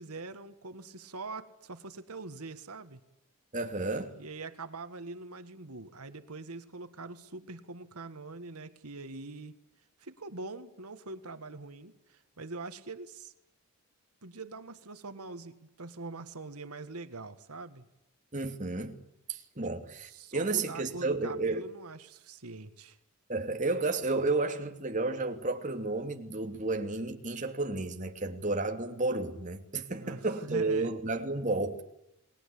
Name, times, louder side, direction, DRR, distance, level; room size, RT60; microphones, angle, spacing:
voice 1, 0.0-3.0 4.2-9.5 10.0-13.3 14.2-17.9 20.1-23.0 30.0-30.2 30.5-30.9, right 3 dB, 85° right, 1.8 m, -43 dB
voice 2, 3.5-4.1 18.3-19.0 19.3-21.6 23.3-31.8, right 3 dB, 35° right, 2.8 m, -32 dB
30.0 x 20.5 x 8.6 m
head